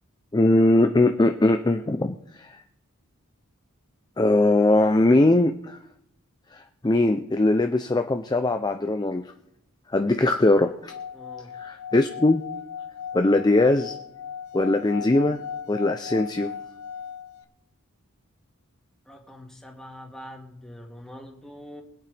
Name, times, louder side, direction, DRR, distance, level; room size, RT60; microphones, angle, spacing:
voice 1, 0.3-2.5 4.2-5.8 6.5-9.2 9.9-10.9 11.6-12.4 13.1-13.9 14.5-15.4 15.7-16.5, left 2 dB, 20° left, 6 dB, 0.5 m, -21 dB
Singing / Glass, 10.8-17.4, left 7 dB, 80° left, 0.9 m, -37 dB
voice 2, 11.1-11.6 19.1-21.8, equal, ahead, -1 dB, 2.2 m, -44 dB
24.0 x 8.6 x 3.4 m, 0.75 s
head